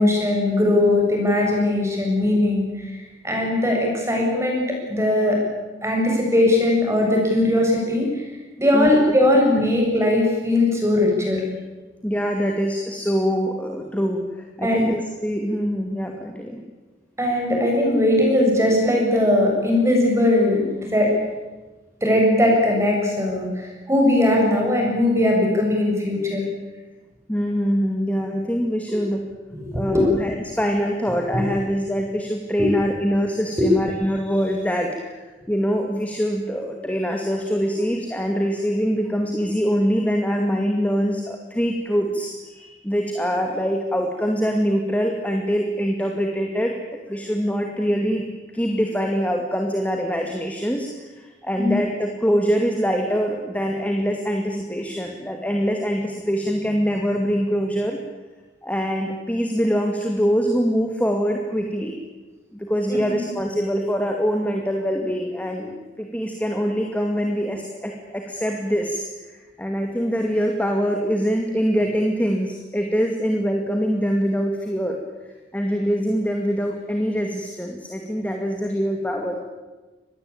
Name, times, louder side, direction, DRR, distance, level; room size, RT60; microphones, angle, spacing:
voice 1, 0.0-2.9 3.2-5.4 5.8-8.2 8.6-11.4 14.6-14.8 17.2-21.1 22.0-26.4 29.6-30.0 32.6-32.7 51.5-51.7 62.9-63.2, left 1 dB, 15° right, 0 dB, 7.6 m, -19 dB
voice 2, 12.0-14.2 14.6-16.6 27.3-29.2 29.7-50.9 51.2-58.0 58.6-62.0 62.5-69.1 69.6-75.0 75.5-79.4, equal, 10° left, 2 dB, 2.3 m, -24 dB
26.0 x 20.0 x 8.8 m, 1.2 s
head